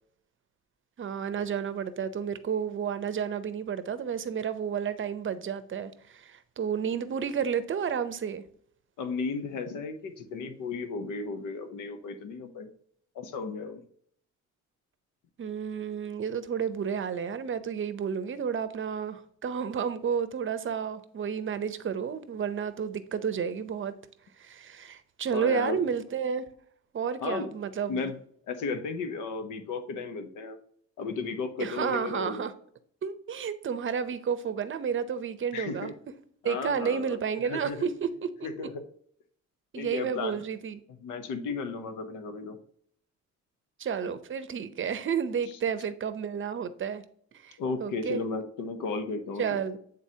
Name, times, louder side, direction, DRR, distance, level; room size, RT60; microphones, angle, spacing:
voice 1, 1.0-8.4 15.4-23.9 24.4-26.5 26.9-28.0 31.6-32.5 33.0-35.9 36.4-38.5 39.7-40.8 43.8-47.0 47.3-48.2 49.4-49.8, right 7 dB, 40° right, 0.6 m, -31 dB
voice 2, 9.0-12.7 13.1-13.8 25.3-25.8 27.2-27.5 27.9-28.2 28.5-30.6 31.0-32.5 35.5-35.9 36.4-37.2 37.4-37.8 38.4-38.8 39.7-40.4 41.0-42.6 45.5-45.6 47.6-49.6, left 4 dB, 85° left, 0.9 m, -34 dB
8.7 x 3.9 x 2.8 m
cardioid pair, 90°, 30 cm